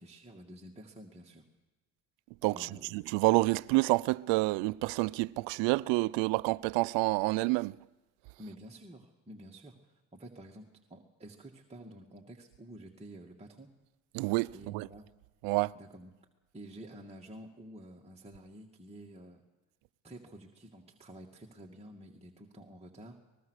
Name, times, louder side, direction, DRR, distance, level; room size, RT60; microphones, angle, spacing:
voice 1, 0.0-1.5 2.5-2.9 8.4-13.7 14.5-15.1 15.7-16.1 16.5-19.4 20.0-23.2, right 1 dB, 15° right, 2.4 m, -50 dB
voice 2, 2.4-7.8 14.1-14.9 15.4-15.7, right 23 dB, 75° right, 0.7 m, -28 dB
24.0 x 20.5 x 6.6 m
supercardioid pair, 85°, 44 cm